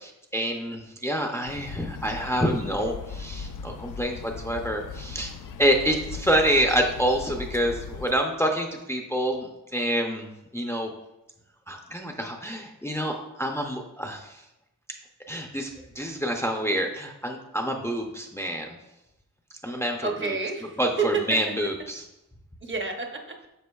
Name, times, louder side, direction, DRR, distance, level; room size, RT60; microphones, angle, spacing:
voice 1, 0.3-5.3 5.6-10.3 10.5-10.9 11.7-14.4 15.3-15.7 16.0-18.8 19.6-20.4 20.8-22.0, equal, 10° left, 2 dB, 0.5 m, -27 dB
sound 1, 1.5-8.1, left 6 dB, 70° left, 0.5 m, -39 dB
voice 2, 20.0-21.4 22.6-23.5, right 5 dB, 35° right, 3 dB, 0.8 m, -29 dB
9.5 x 5.9 x 2.3 m, 0.90 s
wide cardioid pair, 160°, 33 cm